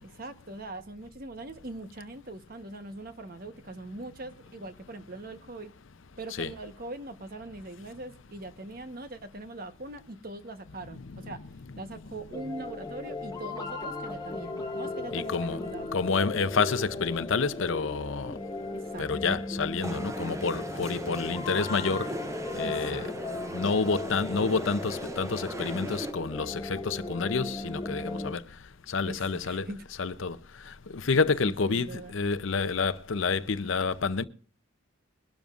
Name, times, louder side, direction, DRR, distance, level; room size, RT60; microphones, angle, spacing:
voice 1, 0.0-5.7 6.2-11.4 11.8-16.2 18.7-19.4 22.6-23.1 29.0-29.8 31.4-32.1, right 2 dB, 45° right, 1.1 m, -42 dB
sound 1, 12.3-28.3, left 2 dB, 20° left, 1.2 m, -37 dB
voice 2, 15.1-15.6 15.9-18.3 19.0-22.1 22.6-23.1 23.5-28.4 28.9-29.7 30.0-30.4 30.9-34.2, left 4 dB, 65° left, 0.6 m, -28 dB
sound 2, 19.8-26.1, right 1 dB, 15° right, 0.5 m, -39 dB
22.0 x 12.0 x 2.5 m
head